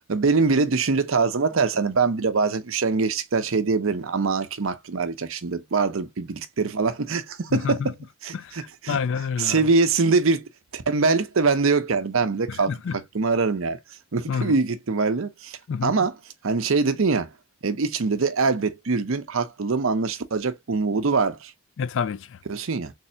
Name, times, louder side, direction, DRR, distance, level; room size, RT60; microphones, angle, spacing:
voice 1, 0.1-7.9 8.2-9.0 9.4-10.4 10.7-12.7 13.1-13.8 14.1-16.1 16.4-17.3 17.6-21.5 22.5-22.9, right 4 dB, 60° right, 0.6 m, -23 dB
voice 2, 7.5-7.9 8.3-9.7 12.5-13.0 14.3-14.6 15.7-15.9 21.8-22.4, left 6 dB, 55° left, 0.3 m, -28 dB
3.4 x 3.2 x 2.7 m
head